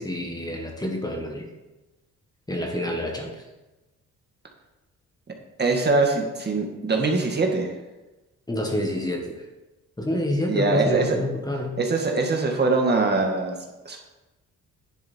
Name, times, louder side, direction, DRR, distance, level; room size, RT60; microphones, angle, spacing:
voice 1, 0.0-1.5 2.5-3.3 8.5-9.2 10.0-11.8, left 1 dB, 15° left, 1 dB, 1.6 m, -27 dB
voice 2, 5.6-7.7 10.5-11.2 11.8-13.5 13.8-14.0, right 3 dB, 35° right, 2 dB, 1.8 m, -22 dB
10.5 x 7.4 x 4.4 m, 1.1 s
cardioid pair, 90°, 30 cm